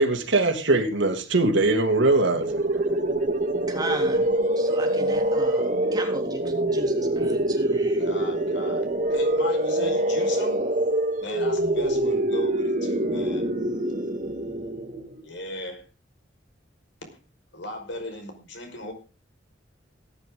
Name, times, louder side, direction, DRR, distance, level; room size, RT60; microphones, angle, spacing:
voice 1, 0.0-2.6, right 2 dB, 80° right, 4 dB, 2.8 m, -21 dB
sound 1, 2.4-15.2, right 1 dB, 45° right, 2.3 m, -25 dB
voice 2, 3.7-4.3 4.6-8.0, right 2 dB, 20° right, 2 dB, 3.5 m, -35 dB
voice 3, 8.0-10.7 11.2-13.5 15.2-15.8 17.5-18.9, left 2 dB, 75° left, 4 dB, 5.2 m, -37 dB
18.0 x 10.5 x 3.9 m, 0.32 s
head